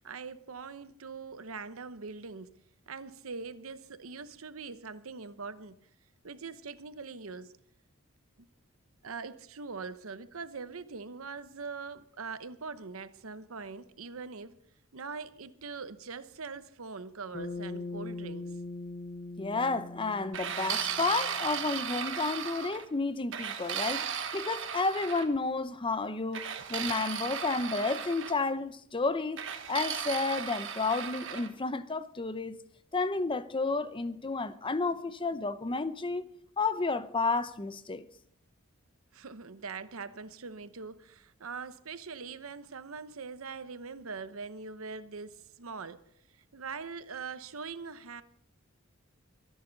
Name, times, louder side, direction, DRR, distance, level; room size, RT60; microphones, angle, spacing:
voice 1, 0.0-2.5 2.9-5.8 6.2-7.5 8.4-8.5 9.0-14.5 14.9-18.6 26.6-26.7 39.1-46.0 46.5-48.2, right 4 dB, 80° right, 0.9 m, -42 dB
Bass guitar, 17.3-21.8, left 2 dB, 40° left, 1.1 m, -41 dB
voice 2, 19.4-24.1 24.3-32.6 32.9-36.2 36.6-38.1, left 3 dB, 25° left, 0.7 m, -31 dB
sound 1, 20.3-22.8 23.3-25.3 26.3-28.4 29.4-31.5, right 7 dB, 65° right, 1.5 m, -36 dB
24.5 x 10.5 x 4.0 m
head